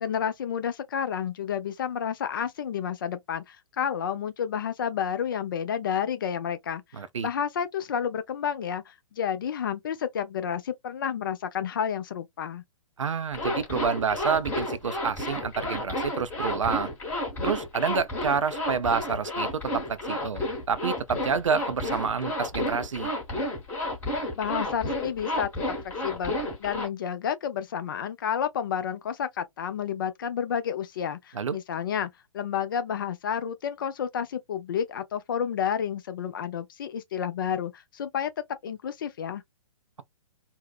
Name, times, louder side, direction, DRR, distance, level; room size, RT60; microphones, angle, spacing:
voice 1, 0.0-12.6 24.4-26.3 26.6-38.3 38.6-39.4, left 8 dB, 40° left, 0.4 m, -30 dB
voice 2, 6.9-7.3 13.0-16.9 17.4-20.4 20.7-23.1 31.3-31.6, right 6 dB, 70° right, 0.4 m, -28 dB
Zipper (clothing), 13.3-26.9, left 1 dB, 15° left, 1.0 m, -31 dB
2.7 x 2.0 x 2.3 m
figure-of-eight pair, 120°, 17 cm